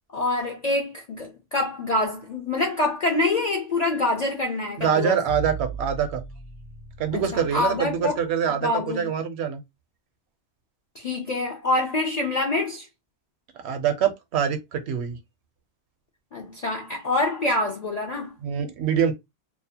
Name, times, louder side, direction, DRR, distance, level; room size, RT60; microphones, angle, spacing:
voice 1, 0.1-5.2 7.1-8.2 8.6-9.2 11.0-12.9 16.3-18.3, left 2 dB, 60° left, 0.4 m, -26 dB
voice 2, 4.8-6.2 7.0-8.7 8.9-9.6 13.6-15.2 18.4-19.1, right 8 dB, 70° right, 0.8 m, -24 dB
sound 1, 5.3-8.3, right 3 dB, 85° left, 1.0 m, -38 dB
2.6 x 2.0 x 2.7 m
omnidirectional pair, 1.2 m